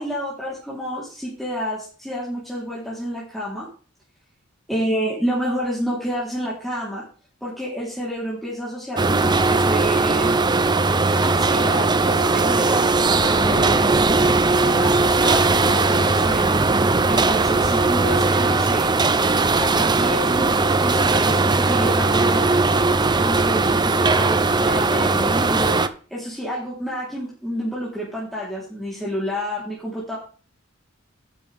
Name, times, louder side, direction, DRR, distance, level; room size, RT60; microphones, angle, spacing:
voice 1, 0.0-3.7 4.7-7.0 7.4-10.4 11.2-14.0 14.6-16.6 17.1-18.9 19.6-22.6 23.2-25.8 26.1-30.2, equal, ahead, -7 dB, 3.7 m, -29 dB
sound 1, 9.0-25.9, right 3 dB, 20° right, 0.7 m, -19 dB
12.0 x 8.7 x 3.5 m, 0.39 s
head